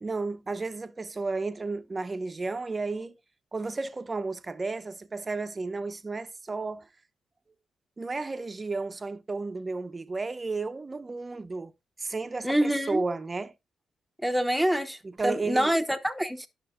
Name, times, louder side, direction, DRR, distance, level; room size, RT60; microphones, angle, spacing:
voice 1, 0.0-3.1 3.5-6.9 8.0-11.7 12.0-13.5 15.0-15.7, right 3 dB, 30° right, 0.8 m, -33 dB
voice 2, 12.4-13.0 14.2-15.0 15.2-16.5, equal, ahead, 1.1 m, -26 dB
11.0 x 5.9 x 2.5 m
supercardioid pair, 55°, 0 cm